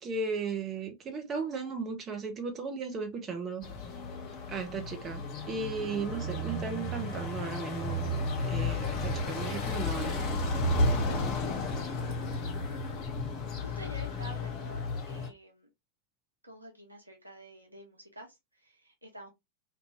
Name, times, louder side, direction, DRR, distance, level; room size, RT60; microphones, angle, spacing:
voice 1, 0.0-3.6 4.5-8.1 8.4-10.4, right 4 dB, 25° right, 0.6 m, -36 dB
sound 1, 3.6-15.3, left 2 dB, 35° left, 0.7 m, -33 dB
voice 2, 12.6-13.3 13.6-15.7 16.4-19.3, right 1 dB, 85° right, 0.8 m, -49 dB
2.6 x 2.3 x 2.8 m
figure-of-eight pair, 90°, 0 cm